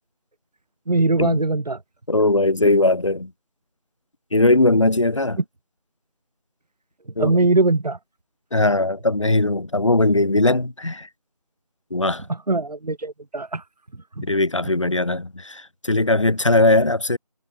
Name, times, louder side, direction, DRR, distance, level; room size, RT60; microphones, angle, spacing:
voice 1, 0.9-1.8 7.2-8.0 12.5-13.6 14.2-14.3, right 2 dB, 75° right, 1.0 m, -21 dB
voice 2, 2.1-3.3 4.3-5.4 7.2-7.4 8.5-11.1 11.9-12.3 14.2-17.2, left 2 dB, 50° left, 2.8 m, -19 dB
figure-of-eight pair, 175°, 20 cm